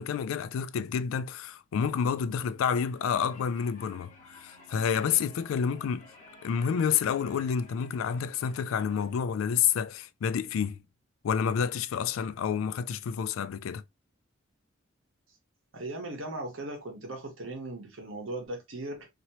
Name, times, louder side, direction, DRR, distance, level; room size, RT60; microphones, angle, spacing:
voice 1, 0.0-6.1 6.4-10.8 11.2-13.8, left 7 dB, 90° left, 0.3 m, -29 dB
sound 1, 2.0-9.1, left 1 dB, 35° left, 0.9 m, -54 dB
voice 2, 15.7-19.1, right 2 dB, 75° right, 1.2 m, -38 dB
2.9 x 2.9 x 2.8 m
head